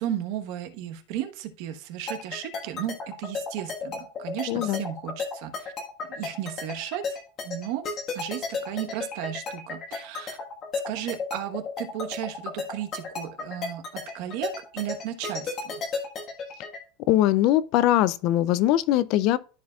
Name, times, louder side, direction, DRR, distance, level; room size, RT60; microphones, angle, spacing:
voice 1, 0.0-5.7 6.1-7.2 7.4-10.4 10.8-15.7, right 11 dB, 55° right, 1.0 m, -34 dB
sound 1, 2.1-16.8, left 4 dB, 30° left, 1.4 m, -32 dB
voice 2, 4.5-4.8 17.1-19.4, left 13 dB, 45° left, 0.3 m, -21 dB
13.5 x 4.8 x 2.3 m
supercardioid pair, 165°, 0 cm